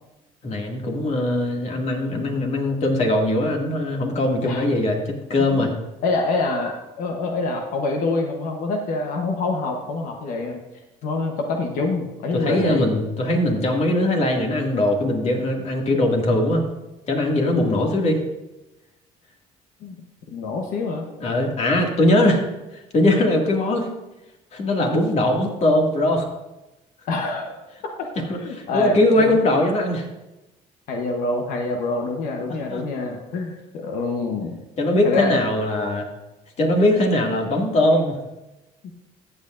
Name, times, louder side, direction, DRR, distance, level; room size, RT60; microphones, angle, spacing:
voice 1, 0.4-5.7 12.3-16.6 17.1-18.2 21.2-22.4 22.7-23.9 24.5-26.3 28.3-30.1 32.7-32.8 34.8-36.1 36.6-38.2, left 1 dB, 50° left, 1 dB, 2.2 m, -21 dB
voice 2, 6.0-10.6 11.0-12.9 19.8-20.0 20.3-21.1 27.1-27.6 27.8-28.1 28.3-29.4 30.9-34.6 35.0-35.3, left 3 dB, 70° left, 2 dB, 1.1 m, -26 dB
14.0 x 8.2 x 2.6 m, 0.99 s
supercardioid pair, 90°, 14 cm